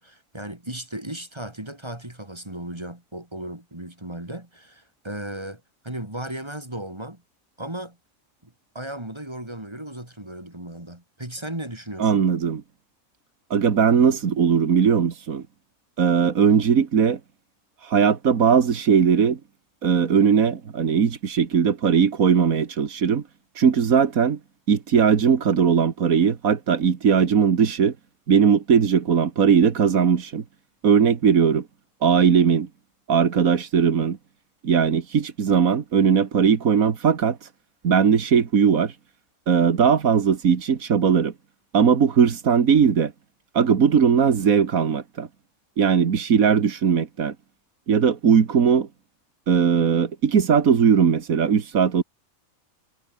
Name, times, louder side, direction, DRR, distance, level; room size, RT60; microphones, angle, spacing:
voice 1, 0.0-7.2 7.6-8.0 8.4-12.2, right 1 dB, 20° right, 3.2 m, -36 dB
voice 2, 12.0-12.6 13.5-15.4 16.0-17.2 17.8-19.4 19.8-23.2 23.6-24.4 24.7-27.9 28.3-30.4 30.8-31.7 32.0-32.7 33.1-34.2 34.6-37.4 37.8-38.9 39.5-41.3 41.7-43.1 43.5-45.3 45.8-47.4 47.9-48.9 49.5-52.0, right 6 dB, 90° right, 2.0 m, -19 dB
omnidirectional pair, 1.4 m